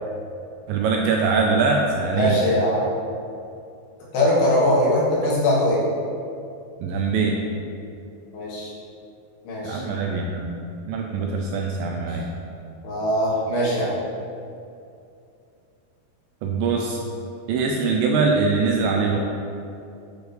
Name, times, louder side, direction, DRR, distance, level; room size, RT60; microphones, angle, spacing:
voice 1, 0.7-2.5 6.8-7.4 9.6-10.6 10.8-12.3 16.4-17.0 17.5-19.2, right 4 dB, 85° right, 0 dB, 2.0 m, -22 dB
voice 2, 2.1-2.9 4.1-5.8 8.3-8.7 9.4-9.8 12.8-14.0, left 1 dB, 90° left, -7 dB, 3.6 m, -21 dB
8.3 x 4.7 x 3.3 m, 2.5 s
omnidirectional pair, 4.4 m